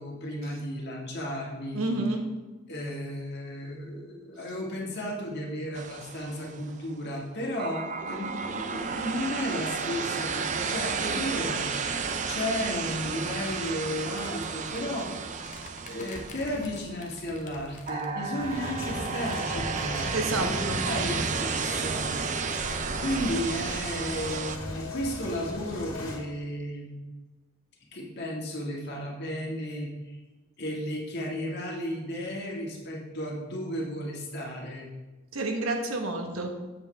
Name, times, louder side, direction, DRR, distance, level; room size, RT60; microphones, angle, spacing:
voice 1, 0.0-2.0 2.7-15.3 15.8-22.4 23.0-27.0 27.9-30.2 30.6-34.9, equal, 55° left, -2 dB, 1.7 m, -34 dB
voice 2, 1.7-2.2 20.1-20.8 35.3-36.5, right 2 dB, 85° right, 3 dB, 1.2 m, -29 dB
sound 1, 5.7-6.8 7.6-17.1 17.9-24.6, right 5 dB, 35° right, 0.4 m, -32 dB
sound 2, 13.4-18.3 18.6-18.7 19.0-19.8, left 3 dB, 35° left, 0.8 m, -48 dB
sound 3, 18.4-26.2, left 1 dB, 70° left, 2.0 m, -37 dB
7.7 x 7.3 x 3.3 m, 1.2 s
head